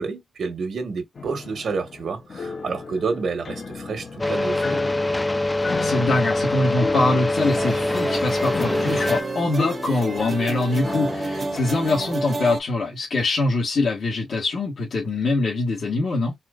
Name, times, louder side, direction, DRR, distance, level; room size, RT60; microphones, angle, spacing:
voice 1, 0.0-4.8, right 4 dB, 85° right, 1.3 m, -29 dB
sound 1, 1.2-12.2, left 4 dB, 50° left, 0.7 m, -34 dB
sound 2, 4.2-9.2, left 2 dB, 15° left, 0.4 m, -24 dB
voice 2, 5.7-16.3, left 2 dB, 70° left, 1.4 m, -23 dB
sound 3, 7.4-12.6, right 3 dB, 40° right, 0.7 m, -31 dB
4.2 x 2.2 x 2.4 m
wide cardioid pair, 160°, 0 cm